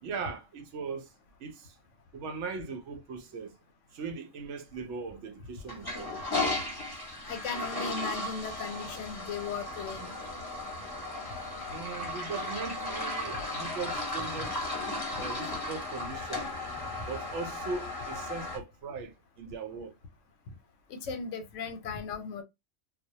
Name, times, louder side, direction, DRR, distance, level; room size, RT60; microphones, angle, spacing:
voice 1, 0.0-1.1 1.4-1.8 2.1-3.5 3.9-6.2 11.7-14.7 15.2-16.5 17.0-19.9, right 4 dB, 75° right, 0.9 m, -39 dB
Toilet flush, 5.6-18.6, left 2 dB, 20° left, 0.7 m, -35 dB
voice 2, 7.3-10.2 20.9-22.4, left 5 dB, 85° left, 1.0 m, -37 dB
2.3 x 2.0 x 2.7 m
omnidirectional pair, 1.3 m